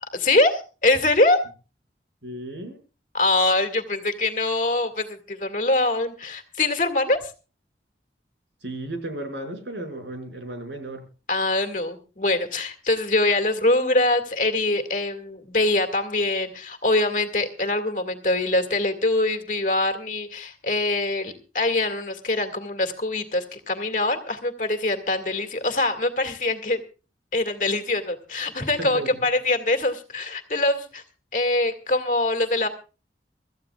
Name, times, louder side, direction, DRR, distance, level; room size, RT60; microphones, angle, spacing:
voice 1, 0.1-1.4 3.1-7.2 11.3-26.8 27.3-31.0 31.3-32.7, left 2 dB, 45° left, 6 dB, 2.1 m, -23 dB
voice 2, 2.2-2.8 8.6-11.0 28.8-29.1, right 1 dB, 85° right, 4 dB, 5.7 m, -34 dB
25.5 x 14.5 x 2.4 m, 0.35 s
head